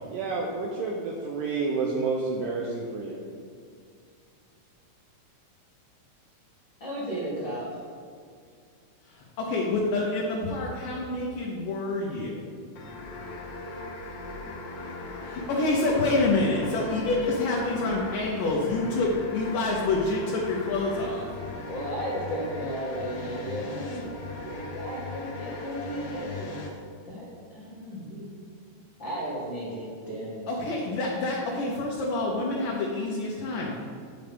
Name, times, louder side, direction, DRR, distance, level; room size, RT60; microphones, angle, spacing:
voice 1, 0.1-3.2, right 4 dB, 80° right, -1 dB, 2.1 m, -29 dB
voice 2, 6.8-7.8 21.7-26.5 27.0-28.2 29.0-30.6, equal, 50° left, -8 dB, 1.4 m, -35 dB
voice 3, 9.1-12.5 15.2-21.3 30.5-33.8, left 2 dB, 70° left, -3 dB, 2.3 m, -27 dB
sound 1, 12.7-26.7, left 2 dB, 90° left, 1.3 m, -38 dB
9.0 x 7.8 x 3.5 m, 2.2 s
omnidirectional pair, 4.6 m